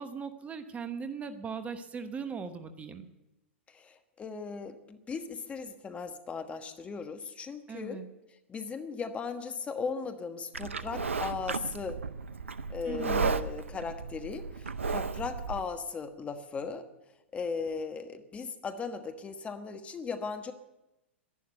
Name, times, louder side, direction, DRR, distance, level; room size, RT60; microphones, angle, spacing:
voice 1, 0.0-3.1 7.7-8.1 12.9-13.3, right 5 dB, 20° right, 9 dB, 1.0 m, -39 dB
voice 2, 3.7-8.0 8.5-12.0 12.7-16.8 17.3-20.5, left 5 dB, 20° left, 7 dB, 1.3 m, -37 dB
Livestock farm animals working animals, 10.5-15.6, right 4 dB, 80° right, 0.7 m, -34 dB
11.5 x 11.0 x 9.0 m, 0.97 s
figure-of-eight pair, 100°, 7 cm